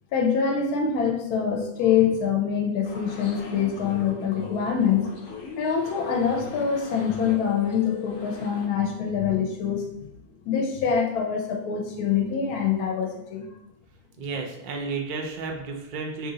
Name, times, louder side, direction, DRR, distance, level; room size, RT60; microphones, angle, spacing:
voice 1, 0.1-5.1 5.6-10.1 10.5-13.5, left 7 dB, 90° left, 2 dB, 1.1 m, -25 dB
sound 1, 2.8-8.7, left 4 dB, 65° left, 1.0 m, -40 dB
voice 2, 14.2-16.3, right 4 dB, 70° right, 1 dB, 0.4 m, -32 dB
2.9 x 2.7 x 3.8 m, 0.82 s
omnidirectional pair, 1.6 m